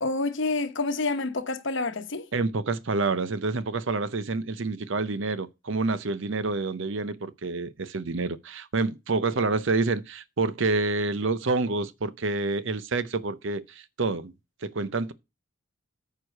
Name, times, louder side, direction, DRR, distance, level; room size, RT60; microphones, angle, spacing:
voice 1, 0.0-2.3, left 3 dB, 55° left, 1.1 m, -28 dB
voice 2, 2.3-14.3 14.6-15.1, right 3 dB, 55° right, 0.7 m, -28 dB
9.3 x 4.7 x 6.4 m
head